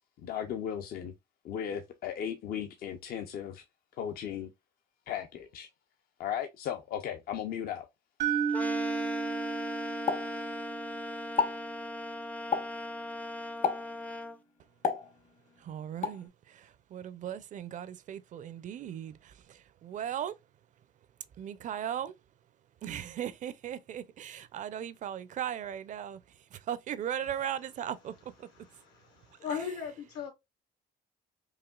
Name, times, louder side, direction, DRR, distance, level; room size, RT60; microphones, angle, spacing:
voice 1, 0.2-1.1 1.4-3.6 4.0-4.5 5.1-5.7 6.2-7.9, left 9 dB, 60° left, 0.6 m, -36 dB
sound 1, 8.2-12.3, right 7 dB, 75° right, 0.8 m, -34 dB
sound 2, 8.5-14.4, left 1 dB, 10° left, 0.4 m, -38 dB
Explosion, 10.1-10.9 11.2-11.7 12.5-12.9 13.6-14.0 14.8-15.5 16.0-16.3, left 6 dB, 45° left, 1.0 m, -31 dB
voice 2, 15.6-20.4 21.4-22.1 22.8-28.5 29.3-29.4, right 10 dB, 50° right, 0.4 m, -38 dB
voice 3, 28.6-30.3, left 7 dB, 85° left, 1.9 m, -38 dB
4.9 x 2.8 x 2.3 m
cardioid pair, 110°, 17 cm